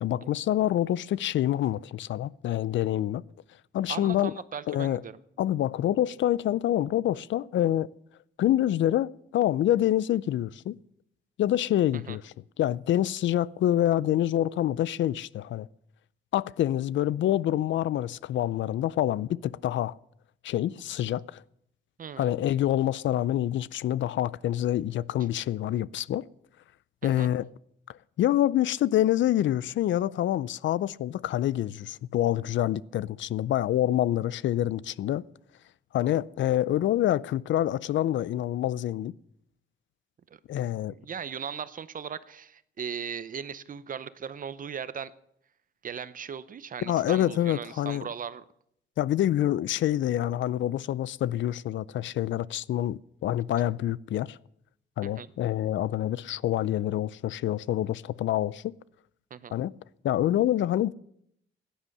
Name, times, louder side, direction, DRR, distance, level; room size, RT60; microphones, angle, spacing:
voice 1, 0.0-3.2 3.7-4.4 4.7-5.0 5.4-7.9 8.4-10.8 11.4-15.7 16.3-20.0 20.4-21.4 22.2-26.3 27.0-27.5 28.2-35.2 35.9-39.1 40.5-40.9 46.8-48.1 49.0-54.4 55.0-58.7 59.5-59.7 60.0-60.9, left 12 dB, 70° left, 0.4 m, -26 dB
voice 2, 3.9-5.2 11.9-12.2 22.0-22.3 27.0-27.3 40.3-40.4 40.7-45.1 45.8-48.4 55.0-55.3 59.3-59.6, right 7 dB, 45° right, 0.7 m, -38 dB
16.5 x 10.0 x 6.5 m
cardioid pair, 115°, 20 cm